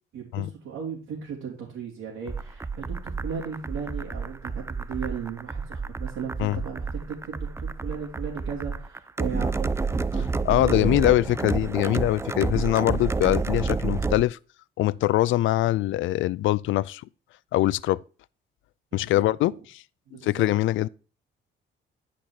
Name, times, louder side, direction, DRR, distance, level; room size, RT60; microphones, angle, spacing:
voice 1, 0.1-11.1 18.9-19.6 20.1-20.5, right 6 dB, 85° right, 3.1 m, -36 dB
sound 1, 2.3-14.2, right 4 dB, 15° right, 0.4 m, -30 dB
voice 2, 10.4-14.4 14.8-17.0 17.5-18.0 18.9-19.8 20.2-20.9, left 15 dB, 75° left, 0.4 m, -23 dB
10.5 x 5.2 x 4.6 m
cardioid pair, 90°, 20 cm